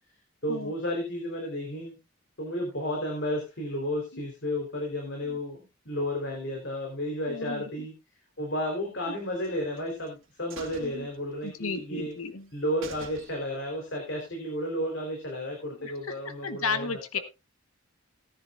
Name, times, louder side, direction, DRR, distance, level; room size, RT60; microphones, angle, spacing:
voice 1, 0.4-2.0 2.4-7.9 8.4-12.1 12.5-17.0, equal, 55° left, 1 dB, 3.7 m, -32 dB
voice 2, 7.3-7.6 10.8-11.1 11.4-12.5 15.8-15.9 16.4-17.2, left 4 dB, 80° left, 10 dB, 1.2 m, -33 dB
sound 1, 9.4-10.1 10.5-11.8 12.1-12.2 12.5-12.6 12.8-13.7 14.1-14.2, right 3 dB, 65° right, 2.4 m, -46 dB
18.0 x 10.5 x 2.4 m, 0.26 s
head